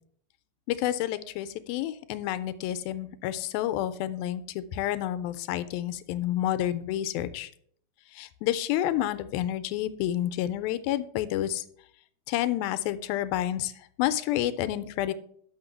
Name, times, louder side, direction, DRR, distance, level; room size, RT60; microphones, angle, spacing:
voice 1, 0.7-7.5 8.2-11.6 12.3-13.7 14.0-15.1, left 12 dB, 85° left, 12 dB, 2.4 m, -29 dB
6.3 x 5.9 x 6.8 m, 0.63 s
omnidirectional pair, 4.2 m